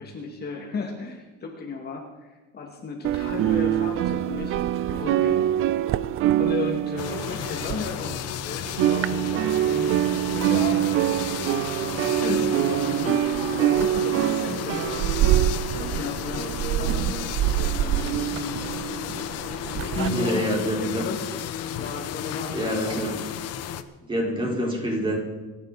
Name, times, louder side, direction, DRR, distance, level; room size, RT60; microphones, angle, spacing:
voice 1, 0.0-5.4 6.3-10.0 10.3-11.1 11.4-11.7 12.1-17.2 17.7-19.2 19.6-21.3 21.6-22.7 24.4-24.7, left 4 dB, 30° left, 1 dB, 2.2 m, -35 dB
sound 1, 3.0-8.4 8.6-20.1, right 12 dB, 45° right, 0.5 m, -25 dB
sound 2, 7.0-23.8, left 10 dB, 55° left, 1.0 m, -33 dB
voice 2, 19.9-21.1 22.5-23.2 24.1-25.2, equal, 15° right, -2 dB, 4.6 m, -27 dB
27.0 x 11.0 x 4.2 m, 1.2 s
cardioid pair, 145°, 30 cm